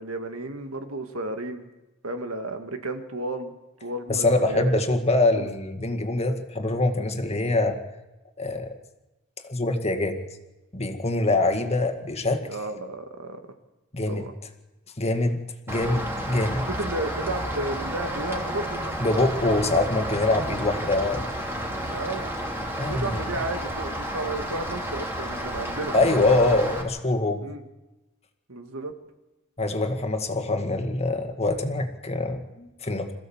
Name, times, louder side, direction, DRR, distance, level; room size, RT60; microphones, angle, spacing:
voice 1, 0.0-1.7 2.0-3.5 3.8-4.8 5.4-5.5 12.5-13.4 14.1-14.3 16.5-18.8 21.9-22.3 22.8-25.9 27.4-27.6 28.5-28.9, right 2 dB, 90° right, 6 dB, 2.0 m, -33 dB
voice 2, 4.1-7.8 8.4-8.7 9.4-10.2 10.7-12.4 13.9-14.2 15.0-15.4 15.7-16.7 19.0-21.3 22.8-23.2 25.9-27.4 29.6-33.1, left 2 dB, 30° left, 6 dB, 1.9 m, -24 dB
Rain, 15.7-26.8, equal, 10° right, 3.0 m, -31 dB
27.0 x 15.5 x 7.3 m, 1.0 s
head